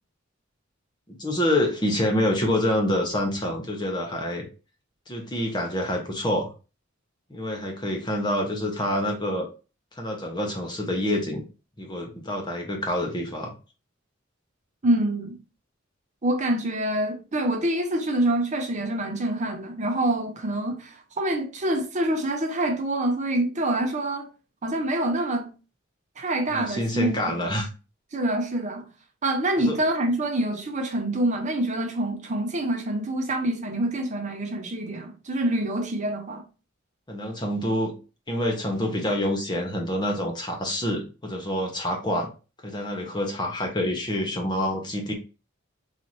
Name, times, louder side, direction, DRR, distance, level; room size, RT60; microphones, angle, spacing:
voice 1, 1.1-4.5 5.1-6.5 7.3-9.5 10.0-11.4 11.8-13.5 26.5-27.7 29.6-29.8 37.1-37.9 38.3-42.3 42.6-45.1, left 1 dB, 25° left, 1.0 m, -27 dB
voice 2, 14.8-15.4 16.2-24.3 24.6-25.5 26.2-27.6 28.1-28.9 29.2-36.4, right 1 dB, 40° right, 0.7 m, -26 dB
4.0 x 2.8 x 3.0 m
head